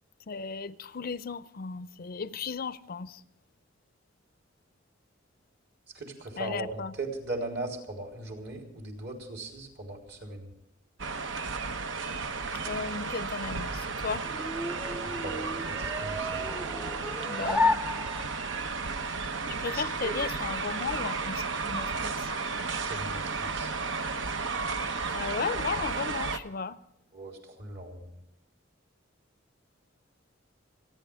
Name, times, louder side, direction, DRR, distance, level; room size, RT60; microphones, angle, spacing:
voice 1, 0.3-3.2 6.4-7.0 12.6-14.3 17.3-17.8 19.5-22.3 25.1-26.8, left 5 dB, 50° left, 0.5 m, -35 dB
voice 2, 5.9-10.5 15.2-16.5 19.7-20.2 22.8-23.7 27.1-28.0, right 2 dB, 55° right, 3.9 m, -38 dB
sound 1, 11.0-26.4, right 4 dB, 75° right, 0.9 m, -33 dB
sound 2, 13.7-18.6, left 2 dB, 5° right, 0.5 m, -32 dB
29.0 x 10.5 x 3.6 m
head